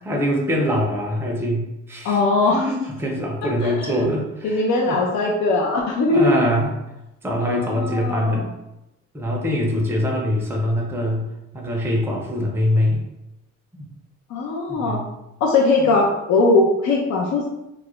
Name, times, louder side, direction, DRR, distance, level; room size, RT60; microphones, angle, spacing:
voice 1, 0.0-2.2 2.5-4.6 4.8-5.0 6.1-6.7 7.2-8.5 9.1-11.3 11.5-13.0 13.7-13.9 14.7-15.0 15.8-15.9, equal, 10° right, 0 dB, 0.5 m, -23 dB
voice 2, 2.0-2.7 3.6-4.0 4.4-6.4 7.4-8.5 14.3-15.0 15.4-17.5, left 3 dB, 65° left, -1 dB, 0.5 m, -20 dB
2.3 x 2.0 x 2.9 m, 0.90 s
cardioid pair, 90°, 30 cm